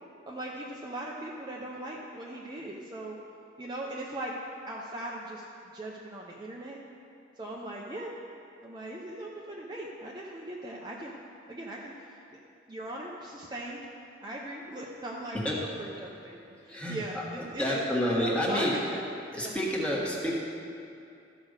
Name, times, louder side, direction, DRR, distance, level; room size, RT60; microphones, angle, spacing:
voice 1, 0.3-3.2 3.6-4.3 4.7-5.4 5.7-6.8 7.4-8.2 8.6-11.1 11.5-12.4 12.7-13.8 14.2-16.4 16.6-19.0 19.4-19.5, right 1 dB, 20° right, -3 dB, 0.6 m, -39 dB
voice 2, 15.3-15.7 16.6-18.7 19.3-20.3, left 1 dB, 5° left, -5 dB, 1.4 m, -29 dB
13.0 x 5.1 x 6.5 m, 2.6 s
head